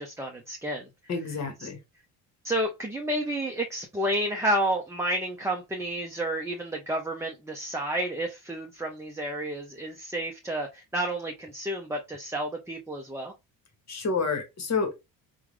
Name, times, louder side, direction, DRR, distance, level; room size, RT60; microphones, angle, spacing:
voice 1, 0.0-0.9 1.6-1.7 2.4-13.3, right 1 dB, 5° right, 0.6 m, -30 dB
voice 2, 1.1-1.8 13.9-14.9, left 4 dB, 40° left, 1.3 m, -29 dB
3.6 x 2.3 x 3.1 m
supercardioid pair, 90°, 40 cm